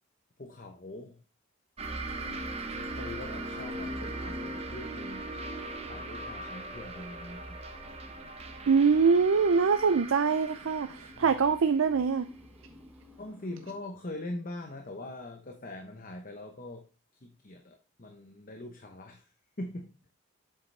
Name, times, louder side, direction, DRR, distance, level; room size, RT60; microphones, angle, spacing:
voice 1, 0.4-1.2 3.0-5.4 5.8-7.6 11.1-11.3 13.2-16.8 17.2-19.3 19.6-20.0, left 1 dB, 40° left, 4 dB, 0.8 m, -42 dB
sound 1, 1.8-13.0, right 2 dB, 30° right, 0.8 m, -39 dB
sound 2, 4.1-13.8, left 2 dB, 10° right, 2.3 m, -55 dB
voice 2, 8.7-12.3, right 5 dB, 75° right, 10 dB, 0.5 m, -24 dB
7.6 x 6.7 x 3.3 m, 0.33 s
head